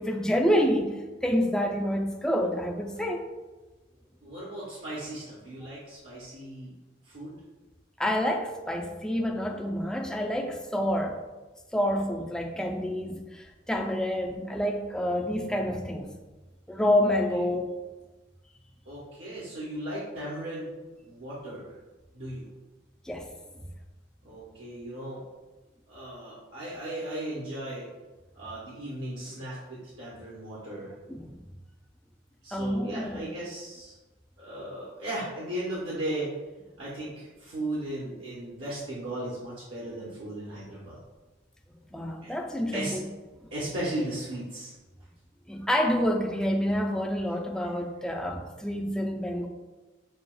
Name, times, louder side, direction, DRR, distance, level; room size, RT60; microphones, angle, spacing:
voice 1, 0.0-3.2 8.0-11.2 11.7-16.1 16.7-17.7 23.1-23.3 31.1-31.3 32.5-33.3 41.9-43.0 45.5-49.5, equal, 5° left, 1 dB, 0.3 m, -28 dB
voice 2, 4.2-6.7 7.1-7.3 17.3-17.4 18.9-20.7 21.0-21.7 22.1-22.5 24.2-25.2 25.9-27.9 28.3-30.9 32.4-33.9 34.4-36.3 36.8-41.0 42.2-42.3 42.7-43.0 43.5-44.7, right 1 dB, 65° right, -8 dB, 0.9 m, -36 dB
6.5 x 2.3 x 2.2 m, 1.2 s
head